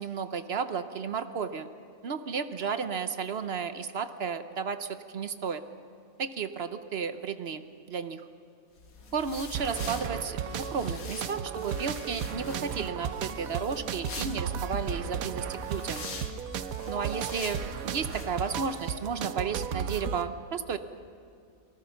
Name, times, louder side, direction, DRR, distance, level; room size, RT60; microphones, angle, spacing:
voice 1, 0.0-1.7 2.0-5.6 6.2-8.2 9.1-16.1 16.9-20.8, right 6 dB, 55° right, 10 dB, 0.9 m, -33 dB
sound 1, 8.8-19.0, left 3 dB, 90° left, 2.0 m, -43 dB
sound 2, 9.5-20.2, right 8 dB, 85° right, 1.2 m, -35 dB
27.5 x 19.0 x 5.8 m, 2.4 s
omnidirectional pair, 1.5 m